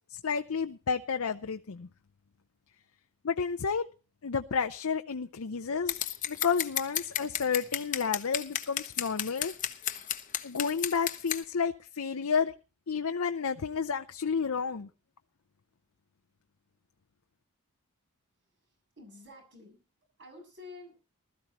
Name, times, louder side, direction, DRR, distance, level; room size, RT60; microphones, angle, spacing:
voice 1, 0.1-1.9 3.2-3.9 4.2-6.0 6.3-9.5 10.4-12.5 12.9-14.9, left 6 dB, 70° left, 0.6 m, -31 dB
Scissors, 5.9-11.4, left 10 dB, 35° left, 1.0 m, -32 dB
voice 2, 18.4-19.8 20.2-20.9, left 3 dB, 55° right, 7.5 m, -50 dB
20.0 x 13.0 x 3.0 m
head